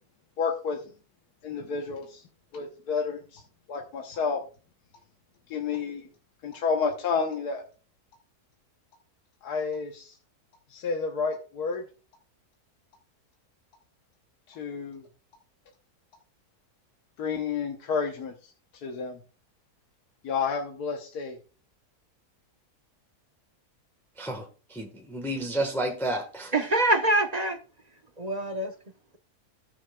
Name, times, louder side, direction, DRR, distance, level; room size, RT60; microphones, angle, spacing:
voice 1, 0.4-0.8 1.4-2.2 2.5-3.4 3.7-4.4 5.5-6.1 6.4-7.6 9.4-10.1 10.7-11.8 14.5-15.1 17.2-18.3 18.8-19.2 20.2-21.4, left 5 dB, 80° left, 1.6 m, -30 dB
voice 2, 24.2-26.5, right 1 dB, ahead, 1.2 m, -31 dB
voice 3, 26.5-27.6 28.2-28.7, right 2 dB, 30° right, 0.9 m, -24 dB
17.0 x 6.3 x 2.3 m
omnidirectional pair, 1.6 m